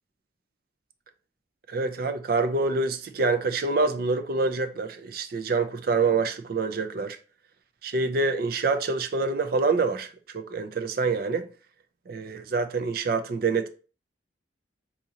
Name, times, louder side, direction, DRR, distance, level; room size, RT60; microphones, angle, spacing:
voice 1, 1.7-7.2 7.8-11.5 12.1-13.7, right 3 dB, 50° right, 0.4 m, -26 dB
3.7 x 2.8 x 2.8 m
head